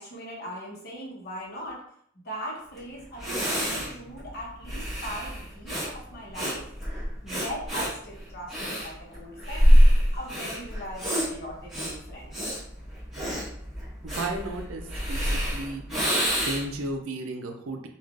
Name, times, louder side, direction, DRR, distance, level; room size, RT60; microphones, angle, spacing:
voice 1, 0.0-1.8 2.2-6.6 7.2-9.7 10.1-12.3, equal, 50° left, -3 dB, 1.0 m, -39 dB
Breathing, 2.8-2.9 3.2-16.8, equal, ahead, 1.2 m, -25 dB
voice 2, 14.0-15.8 16.3-17.8, right 2 dB, 80° right, 4 dB, 0.5 m, -34 dB
3.2 x 2.4 x 2.4 m, 0.67 s
head